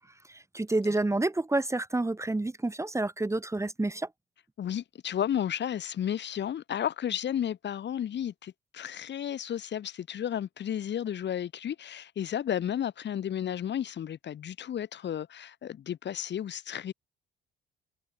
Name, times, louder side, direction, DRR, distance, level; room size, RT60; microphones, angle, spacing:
voice 1, 0.3-4.1, right 2 dB, 15° right, 1.6 m, -29 dB
voice 2, 4.6-16.9, left 9 dB, 60° left, 3.2 m, -33 dB
cardioid pair, 90°, 20 cm